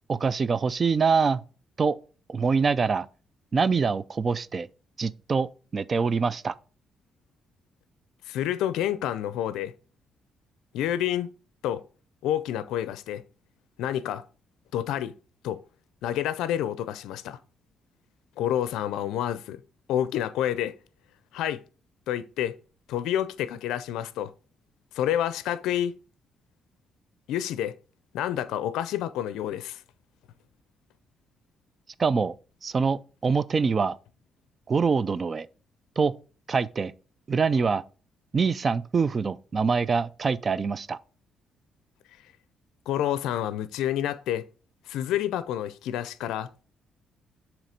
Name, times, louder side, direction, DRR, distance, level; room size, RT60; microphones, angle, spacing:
voice 1, 0.1-1.4 1.8-2.0 2.3-3.1 3.5-4.7 5.0-6.5 32.0-32.3 32.6-34.0 34.7-35.5 36.0-36.1 36.5-36.9 37.3-37.8 38.3-41.0, right 5 dB, 40° right, 0.4 m, -24 dB
voice 2, 8.3-9.7 10.7-11.3 11.6-11.8 12.2-13.2 13.8-14.2 14.7-15.1 15.4-15.6 16.0-17.4 18.4-19.6 19.9-20.7 21.3-21.6 22.1-22.5 22.9-24.3 24.9-25.9 27.3-27.7 28.1-29.8 42.9-44.4 44.9-46.5, left 11 dB, 90° left, 0.4 m, -28 dB
7.4 x 3.0 x 5.0 m
cardioid pair, 90°, 0 cm